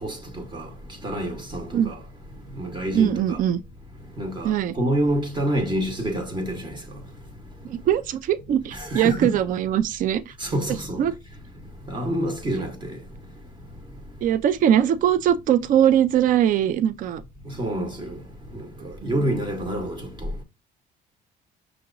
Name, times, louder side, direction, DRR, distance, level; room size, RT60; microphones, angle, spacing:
voice 1, 0.0-0.7 1.0-2.0 2.6-3.4 4.2-4.5 4.8-6.7 8.7-9.3 10.4-11.0 11.9-13.0 17.6-18.2 18.8-20.3, right 1 dB, 25° right, 0.9 m, -27 dB
voice 2, 2.9-3.6 4.4-4.7 7.6-10.3 11.0-11.1 14.2-17.2 19.0-19.1, right 10 dB, 55° right, 0.4 m, -21 dB
6.1 x 2.9 x 2.4 m
cardioid pair, 110°, 17 cm